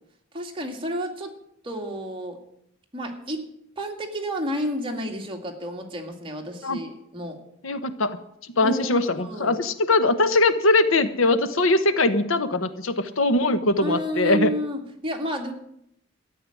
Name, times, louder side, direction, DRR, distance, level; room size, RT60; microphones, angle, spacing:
voice 1, 0.3-1.4 1.6-2.4 2.9-3.5 3.8-7.4 8.6-9.6 13.8-15.5, equal, 25° right, 2 dB, 2.2 m, -31 dB
voice 2, 7.6-8.2 8.6-14.5, left 2 dB, 85° left, 11 dB, 1.1 m, -21 dB
13.5 x 7.8 x 10.0 m, 0.75 s
head